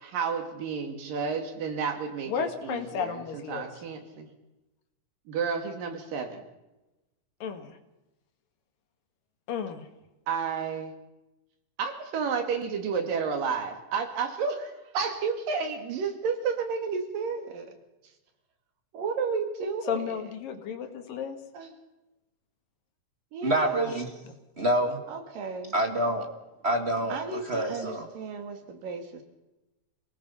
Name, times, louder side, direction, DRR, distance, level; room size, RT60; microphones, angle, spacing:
voice 1, 0.0-4.3 5.3-6.5 10.3-10.9 11.8-17.7 18.9-20.2 21.5-21.7 23.3-24.0 25.1-25.7 27.1-29.2, right 5 dB, 80° right, 6 dB, 3.9 m, -32 dB
voice 2, 2.3-3.7 7.4-7.8 9.5-9.8 19.9-21.4, left 7 dB, 80° left, 6 dB, 3.6 m, -33 dB
voice 3, 23.4-24.1 24.6-25.0 25.7-26.3 26.6-28.1, right 1 dB, 25° right, 4 dB, 1.4 m, -27 dB
27.0 x 18.5 x 5.7 m, 0.98 s
omnidirectional pair, 3.9 m